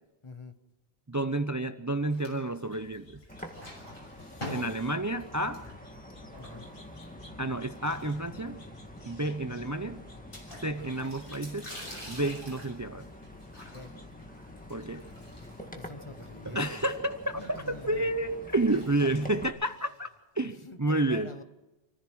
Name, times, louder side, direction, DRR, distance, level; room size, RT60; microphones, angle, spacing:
voice 1, 0.2-0.6 4.1-4.9 6.1-6.7 13.7-13.9 15.6-16.8 17.3-18.2 19.0-19.3 20.4-21.4, left 3 dB, 30° left, 9 dB, 1.1 m, -48 dB
voice 2, 1.1-3.2 4.5-5.6 7.4-8.6 9.0-10.0 10.6-11.7 12.1-13.1 14.7-15.1 16.5-20.1 20.4-21.3, right 2 dB, 20° right, 9 dB, 0.6 m, -30 dB
sound 1, 2.1-2.9 3.2-7.0 7.7-8.7 9.0-9.1 9.3-9.4 10.3-15.8 16.1-20.2, left 1 dB, 60° left, 7.1 m, -47 dB
sound 2, 2.7-15.6, left 2 dB, 85° left, 2.6 m, -57 dB
sound 3, 3.3-19.5, left 1 dB, 10° left, 1.7 m, -47 dB
27.5 x 15.0 x 6.2 m, 1.0 s
omnidirectional pair, 1.0 m